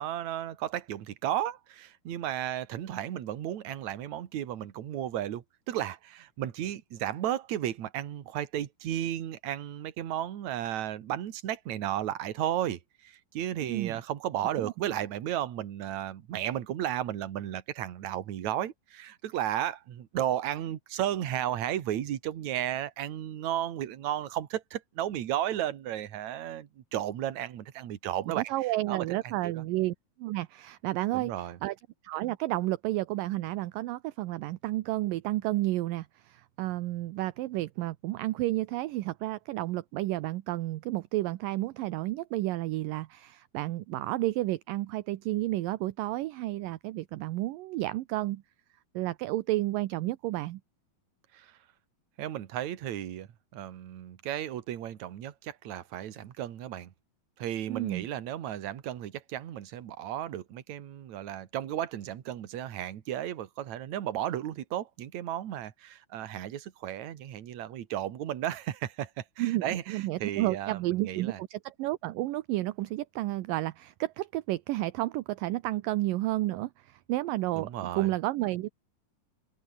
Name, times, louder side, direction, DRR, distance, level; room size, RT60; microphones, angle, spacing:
voice 1, 0.0-28.4 28.9-29.0 29.4-29.5 31.1-31.6 51.3-51.5 52.2-56.9 57.4-71.4 77.5-78.1, right 11 dB, 55° right, 2.6 m, -34 dB
voice 2, 13.6-14.0 14.6-14.7 28.4-29.9 30.2-31.8 32.0-48.4 48.9-50.6 57.7-58.1 69.4-77.7 78.0-78.7, right 17 dB, 75° right, 2.2 m, -31 dB
omnidirectional pair, 4.6 m